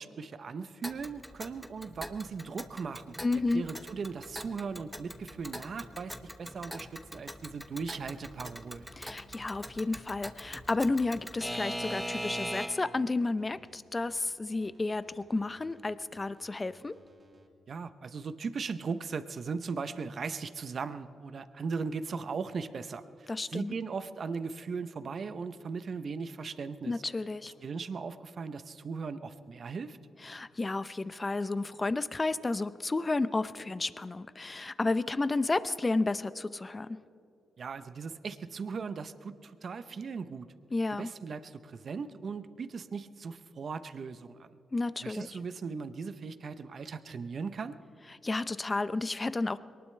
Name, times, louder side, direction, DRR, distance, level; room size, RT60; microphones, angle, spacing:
voice 1, 0.0-3.2 3.5-8.9 17.7-26.9 27.6-30.0 37.6-40.5 40.9-44.6 45.0-47.8, right 5 dB, 55° right, 12 dB, 0.7 m, -38 dB
Alarm / Clock, 0.8-13.0, equal, 5° left, 1.1 m, -41 dB
voice 2, 3.2-3.6 9.0-16.9 23.3-23.7 26.9-27.5 30.2-37.0 40.7-41.1 44.7-45.3 48.2-49.6, left 3 dB, 30° left, 15 dB, 0.7 m, -32 dB
sound 1, 8.7-17.5, right 1 dB, 40° right, 2.8 m, -60 dB
22.5 x 19.0 x 3.3 m, 2.6 s
supercardioid pair, 55°, 0 cm